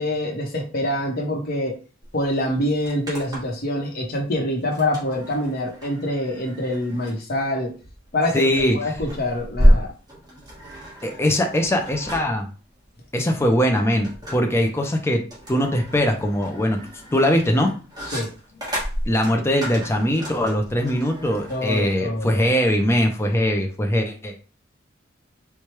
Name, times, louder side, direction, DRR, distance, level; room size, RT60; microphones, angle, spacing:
voice 1, 0.0-1.7 2.1-7.7 8.1-8.5 8.7-9.9 18.1-18.3 21.5-22.4, left 1 dB, 50° left, 1 dB, 0.9 m, -25 dB
sound 1, 2.0-2.1 2.4-3.7 4.7-21.8, equal, 20° right, 1.3 m, -28 dB
voice 2, 8.3-8.8 11.0-12.5 13.1-15.2 15.5-16.8 17.1-17.7 19.1-24.4, equal, 15° left, 3 dB, 0.5 m, -21 dB
4.5 x 2.2 x 3.1 m, 0.36 s
head